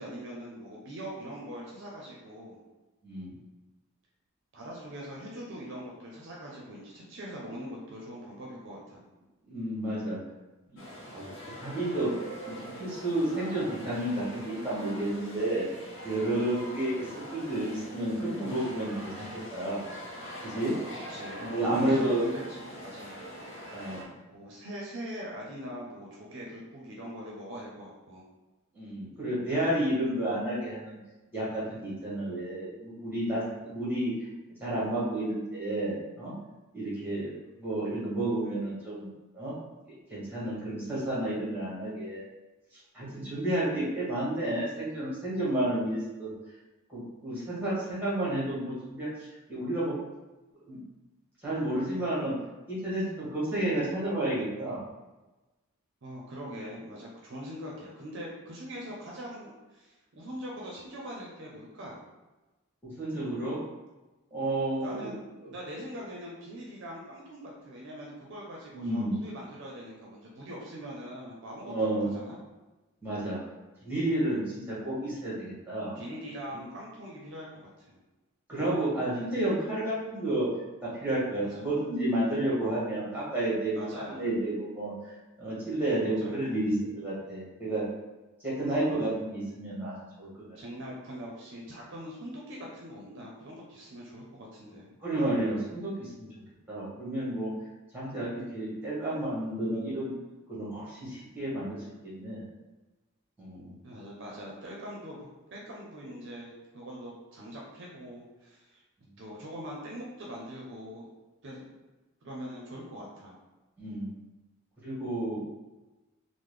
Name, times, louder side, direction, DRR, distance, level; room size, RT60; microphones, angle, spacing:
voice 1, 0.0-2.6 4.5-9.1 21.1-23.2 23.6-23.9 24.3-28.3 33.6-33.7 56.0-62.0 64.8-72.4 76.0-78.0 81.5-81.6 83.7-84.2 86.0-86.5 90.5-95.0 103.8-108.8 109.2-111.1 111.4-111.7 112.2-113.4, equal, 55° right, -3 dB, 0.5 m, -42 dB
voice 2, 3.0-3.3 9.5-10.2 10.7-10.8 11.1-11.3 11.6-12.1 12.5-15.6 16.0-17.1 17.3-19.3 19.5-19.8 20.4-20.7 21.4-22.3 23.7-24.1 28.7-31.0 31.3-34.1 34.6-36.3 36.7-37.3 37.6-39.1 39.3-39.5 40.1-42.2 42.9-46.3 46.9-49.1 49.5-49.9 50.7-50.8 51.4-52.3 52.7-54.8 62.8-63.6 64.3-65.1 68.7-69.2 71.6-72.1 73.0-73.4 73.8-75.9 76.5-76.6 78.5-80.5 80.8-87.8 88.4-90.6 95.0-96.3 96.7-97.5 97.9-100.1 100.5-102.4 103.4-103.7 113.8-114.1 114.8-115.4, right 1 dB, 10° right, -8 dB, 1.2 m, -31 dB
sound 1, 10.8-24.0, equal, 55° left, 0.7 m, -43 dB
3.6 x 2.0 x 3.2 m, 1.1 s
head